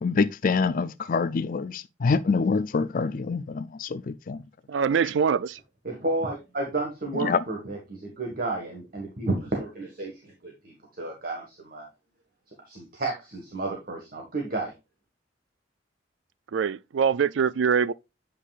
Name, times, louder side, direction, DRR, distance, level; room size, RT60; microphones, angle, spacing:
voice 1, 0.0-4.4 7.2-7.4, left 4 dB, 50° left, 0.4 m, -26 dB
voice 2, 4.7-5.6 16.5-17.9, right 6 dB, 90° right, 0.4 m, -23 dB
voice 3, 5.8-11.8 12.7-14.7, right 2 dB, 55° right, 1.7 m, -32 dB
8.2 x 5.7 x 2.4 m
head